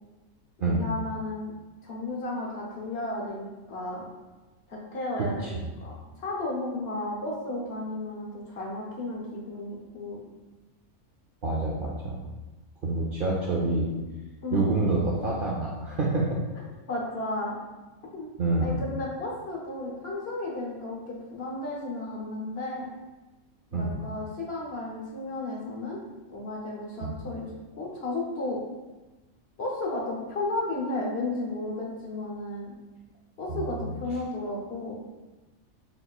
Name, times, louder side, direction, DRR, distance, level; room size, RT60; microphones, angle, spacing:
voice 1, 0.6-1.5 1.8-4.1 4.7-10.2 14.4-14.7 16.9-17.6 18.1-18.3 18.6-22.9 23.7-26.0 26.3-27.5 27.8-28.6 29.6-32.7 33.4-35.0, left 2 dB, 55° left, -3 dB, 1.0 m, -33 dB
voice 2, 11.4-12.2 12.8-13.9 14.5-16.4 18.4-18.8 23.7-24.0 27.0-27.2 33.5-33.8, right 2 dB, 60° right, -4 dB, 0.6 m, -27 dB
4.1 x 3.9 x 2.3 m, 1.1 s
omnidirectional pair, 1.4 m